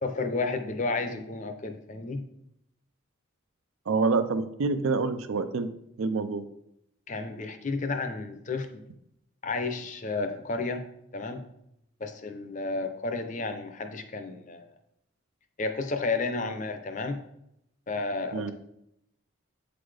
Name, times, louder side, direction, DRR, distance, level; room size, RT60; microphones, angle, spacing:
voice 1, 0.0-2.2 7.1-8.7 9.4-10.8 11.1-11.4 12.0-14.6 15.6-17.2 17.9-18.5, left 3 dB, 35° left, 7 dB, 0.6 m, -32 dB
voice 2, 3.9-5.7 6.0-6.4 18.3-18.5, right 4 dB, 75° right, 10 dB, 0.5 m, -27 dB
7.9 x 3.9 x 3.3 m, 0.79 s
head